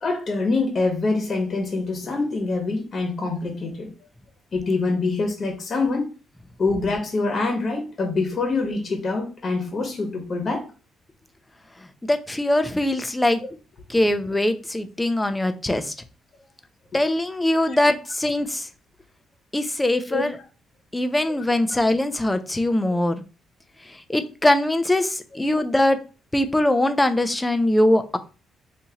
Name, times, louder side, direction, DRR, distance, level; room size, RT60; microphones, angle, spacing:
voice 1, 0.0-3.9 4.5-6.1 6.6-10.6 17.7-17.8 20.1-20.2, left 3 dB, 45° left, 2 dB, 1.2 m, -25 dB
voice 2, 12.0-13.4 13.9-15.9 16.9-18.7 19.5-20.4 20.9-23.2 23.9-26.0 26.3-28.2, left 1 dB, 10° left, 9 dB, 0.5 m, -22 dB
3.6 x 2.7 x 2.9 m, 0.33 s
cardioid pair, 90°, 0 cm